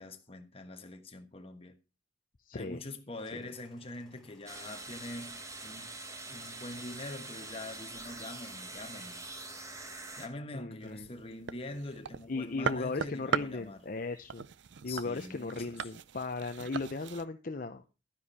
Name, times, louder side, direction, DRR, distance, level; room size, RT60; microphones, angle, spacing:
voice 1, 0.0-1.8 2.5-5.9 6.3-9.3 10.2-13.8 14.9-15.9, left 2 dB, 30° left, 1.3 m, -44 dB
voice 2, 2.4-2.8 3.3-3.4 10.5-11.1 12.3-14.4 14.8-17.8, left 3 dB, 50° left, 0.7 m, -37 dB
sound 1, 3.1-9.9, equal, ahead, 3.9 m, -63 dB
sound 2, 4.5-10.3, right 2 dB, 15° right, 1.4 m, -44 dB
sound 3, 10.8-17.2, right 6 dB, 75° right, 0.5 m, -39 dB
12.0 x 9.9 x 4.2 m
head